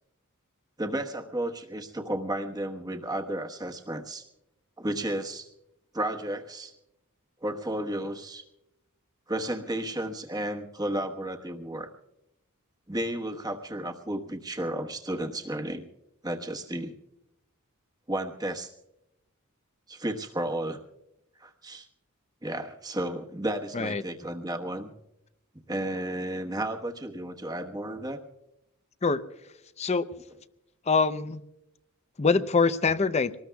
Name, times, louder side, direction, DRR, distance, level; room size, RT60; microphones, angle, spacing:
voice 1, 0.8-4.3 4.8-5.5 5.9-6.7 7.4-8.4 9.3-11.9 12.9-15.9 16.2-16.9 18.1-18.7 19.9-20.8 21.4-21.9 22.4-24.9 25.7-28.2, right 1 dB, 20° right, 4 dB, 1.2 m, -33 dB
voice 2, 29.8-30.1 30.9-31.4 32.2-33.4, left 4 dB, 30° left, 13 dB, 0.6 m, -24 dB
24.5 x 19.5 x 2.3 m, 0.88 s
head